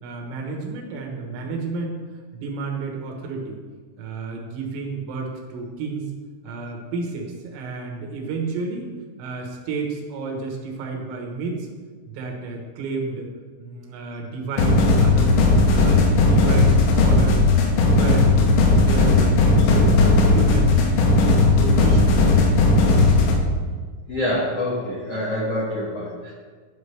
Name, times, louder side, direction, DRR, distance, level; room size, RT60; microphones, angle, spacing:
voice 1, 0.0-2.0 2.3-3.6 4.0-6.1 6.4-11.7 12.1-13.3 13.6-15.4 15.7-17.4 17.7-19.9 20.3-22.1, right 4 dB, 80° right, 1 dB, 3.8 m, -31 dB
sound 1, 14.6-23.4, left 3 dB, 80° left, 3.2 m, -16 dB
voice 2, 24.1-26.3, left 1 dB, 60° left, -7 dB, 1.6 m, -26 dB
12.5 x 6.0 x 3.3 m, 1.5 s
omnidirectional pair, 5.7 m